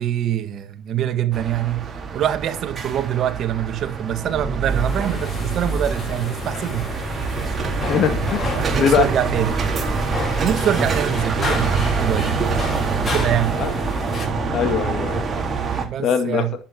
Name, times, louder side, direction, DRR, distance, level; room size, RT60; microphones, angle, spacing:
voice 1, 0.0-6.9 8.5-9.6 10.4-12.4 13.0-13.6 15.8-16.5, right 11 dB, 55° right, 1.8 m, -24 dB
sound 1, 1.3-15.8, right 4 dB, 35° right, 4.2 m, -25 dB
sound 2, 4.7-14.3, left 3 dB, 35° left, 5.6 m, -31 dB
voice 2, 7.8-9.1 13.6-13.7 14.5-15.4 16.0-16.5, left 8 dB, 60° left, 2.1 m, -22 dB
11.5 x 8.9 x 4.6 m
supercardioid pair, 95°, 0 cm